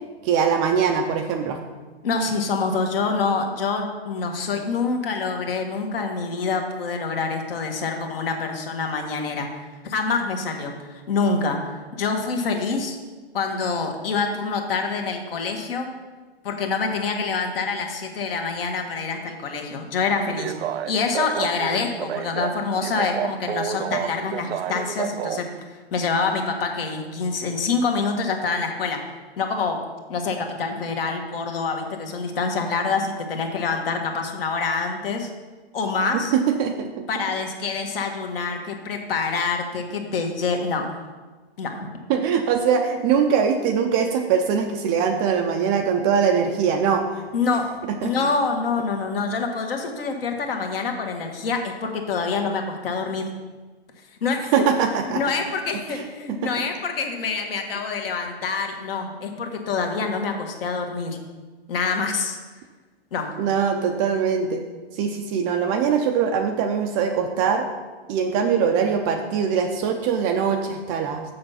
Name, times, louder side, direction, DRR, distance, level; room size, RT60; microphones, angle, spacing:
voice 1, 0.2-1.6 36.1-37.1 42.1-47.2 48.0-48.1 54.5-55.2 55.9-56.0 56.4-56.5 63.4-64.6 65.0-67.7 68.1-71.2, right 7 dB, 20° right, 4 dB, 0.4 m, -22 dB
voice 2, 2.0-9.5 9.8-11.6 11.9-13.0 13.3-15.9 16.4-20.5 20.9-29.0 29.4-29.8 30.1-35.3 35.7-36.3 37.1-40.8 41.6-41.9 47.3-47.7 48.0-53.3 54.2-54.6 55.0-61.2 61.7-62.4 63.1-63.3, left 4 dB, 60° left, 4 dB, 1.6 m, -26 dB
sound 1, 20.3-25.4, right 9 dB, 75° right, 0.5 m, -30 dB
6.8 x 6.7 x 5.7 m, 1.3 s
hypercardioid pair, 135°, 32 cm